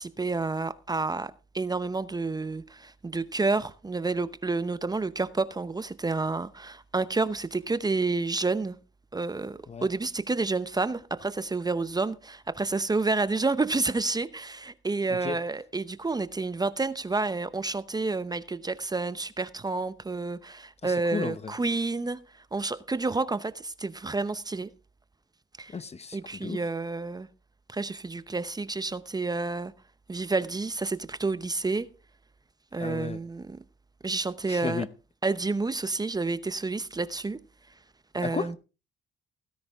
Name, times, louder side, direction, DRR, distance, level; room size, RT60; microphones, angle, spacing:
voice 1, 0.0-8.8 9.1-22.2 22.5-24.7 25.6-25.8 26.1-27.3 27.7-29.7 30.1-31.9 32.7-33.6 34.0-34.8 35.2-37.4 38.1-38.6, right 3 dB, 20° right, 0.8 m, -29 dB
voice 2, 20.8-21.5 25.7-26.6 32.8-33.2 34.5-34.9 38.2-38.6, left 5 dB, 30° left, 0.9 m, -34 dB
17.0 x 9.8 x 3.6 m
cardioid pair, 90°, 20 cm